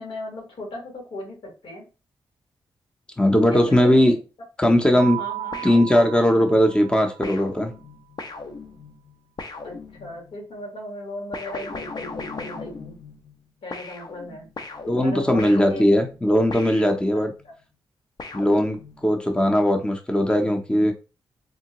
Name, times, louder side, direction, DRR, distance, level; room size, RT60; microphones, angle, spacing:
voice 1, 0.0-1.8 3.5-4.2 5.0-5.6 9.6-13.0 13.6-14.5 14.9-16.0 17.4-17.5, left 1 dB, 80° left, 1 dB, 1.5 m, -37 dB
voice 2, 3.2-4.1 4.6-5.2 5.6-7.7 14.9-17.3 18.3-20.9, equal, 10° left, 4 dB, 0.6 m, -19 dB
Keyboard (musical), 5.0-7.6, right 14 dB, 35° right, 0.4 m, -35 dB
sound 1, 5.5-6.5 7.2-10.4 11.3-13.4 13.7-17.5 18.2-19.2, left 3 dB, 50° left, 0.6 m, -38 dB
3.6 x 2.2 x 2.9 m, 0.31 s
cardioid pair, 70°, 9 cm